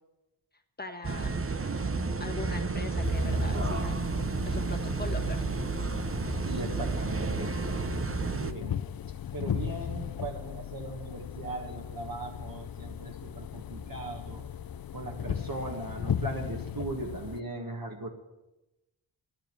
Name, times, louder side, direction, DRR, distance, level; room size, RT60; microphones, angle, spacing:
voice 1, 0.8-1.4 2.2-4.0 4.4-5.4, left 3 dB, 20° left, 4 dB, 1.5 m, -40 dB
sound 1, 1.0-8.5, right 4 dB, 30° right, 0.8 m, -31 dB
sound 2, 3.0-17.4, left 9 dB, 50° left, 0.5 m, -37 dB
voice 2, 6.4-7.5 8.4-8.8 9.3-14.4 14.9-18.1, right 2 dB, 45° right, 0 dB, 1.7 m, -38 dB
11.5 x 9.2 x 9.0 m, 0.98 s
wide cardioid pair, 95°, 47 cm